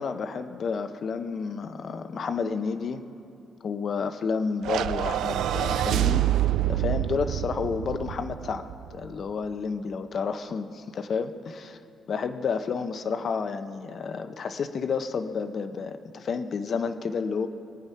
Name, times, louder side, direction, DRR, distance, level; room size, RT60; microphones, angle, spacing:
voice 1, 0.0-3.0 3.6-6.3 6.7-11.5 12.1-17.5, left 5 dB, 50° left, 9 dB, 0.7 m, -30 dB
sound 1, 4.6-9.1, right 13 dB, 80° right, 0.4 m, -27 dB
21.5 x 8.9 x 5.7 m, 2.6 s
cardioid pair, 115°, 0 cm